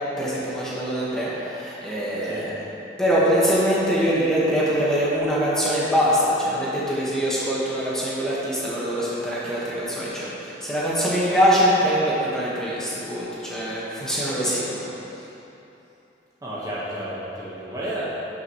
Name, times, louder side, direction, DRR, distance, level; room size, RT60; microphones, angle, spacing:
voice 1, 0.2-2.5 3.0-14.9, equal, 5° left, -9 dB, 1.4 m, -23 dB
voice 2, 16.4-18.0, right 1 dB, 20° right, -9 dB, 1.2 m, -32 dB
12.0 x 5.9 x 3.1 m, 3.0 s
head